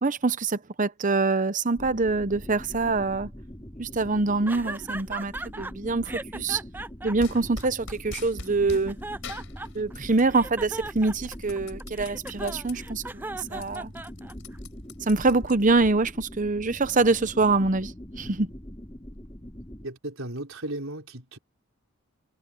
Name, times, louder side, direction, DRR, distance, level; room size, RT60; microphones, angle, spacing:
voice 1, 0.0-3.3 3.8-6.6 7.0-9.0 9.7-13.9 15.0-18.5, right 3 dB, 35° right, 0.8 m, -25 dB
sound 1, 1.7-19.9, equal, 20° left, 2.8 m, -42 dB
sound 2, 4.5-5.7 6.1-8.2 8.6-9.9 10.3-14.6, right 2 dB, 10° right, 0.4 m, -37 dB
sound 3, 7.2-8.9 9.2-10.4 10.7-12.8 13.2-13.3 13.5-15.9, left 3 dB, 60° left, 6.8 m, -42 dB
voice 2, 19.8-21.4, right 1 dB, 65° right, 4.7 m, -35 dB
head